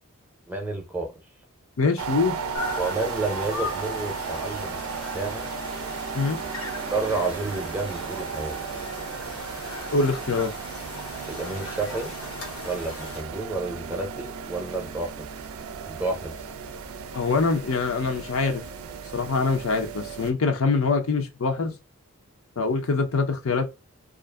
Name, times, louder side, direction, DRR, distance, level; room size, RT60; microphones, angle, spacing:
voice 1, 0.5-1.1 2.8-5.5 6.9-8.6 11.3-12.1 12.6-15.3 15.9-16.3, right 3 dB, 10° right, 0.6 m, -30 dB
voice 2, 1.8-2.3 6.1-6.4 9.9-10.5 17.1-18.6 19.1-21.7 22.6-23.7, left 4 dB, 75° left, 0.7 m, -24 dB
sound 1, 2.0-20.3, right 5 dB, 75° right, 0.4 m, -35 dB
sound 2, 2.5-13.2, left 3 dB, 90° left, 1.0 m, -39 dB
2.5 x 2.5 x 2.3 m
head